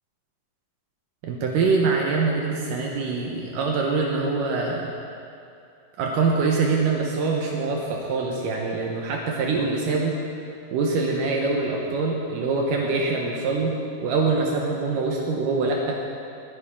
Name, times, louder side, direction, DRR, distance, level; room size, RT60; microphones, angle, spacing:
voice 1, 1.2-4.9 6.0-10.2 10.7-16.0, right 4 dB, 75° right, -1 dB, 2.6 m, -24 dB
21.0 x 10.0 x 3.7 m, 2.5 s
omnidirectional pair, 3.9 m